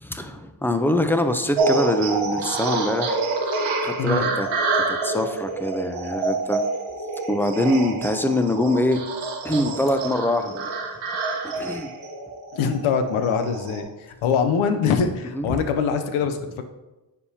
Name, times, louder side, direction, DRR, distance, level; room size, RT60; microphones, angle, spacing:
voice 1, 0.0-3.2 3.8-4.5 4.9-6.6 7.3-9.0 9.4-10.7 11.4-11.9 15.3-15.6, left 1 dB, 5° left, 8 dB, 0.5 m, -24 dB
sound 1, 1.6-13.8, right 3 dB, 75° right, 1.0 m, -27 dB
voice 2, 4.0-4.3 11.6-11.7 12.5-16.6, left 6 dB, 90° left, 8 dB, 0.7 m, -23 dB
9.4 x 3.6 x 2.8 m, 1.1 s
supercardioid pair, 50°, 47 cm